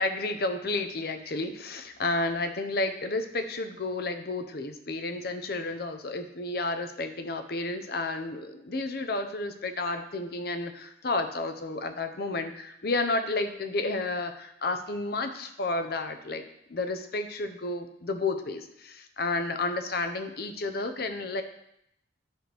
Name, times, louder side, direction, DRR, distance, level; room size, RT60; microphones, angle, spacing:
voice 1, 0.0-16.4 16.7-21.4, left 2 dB, 55° left, 8 dB, 0.8 m, -31 dB
10.5 x 6.1 x 3.4 m, 0.77 s
head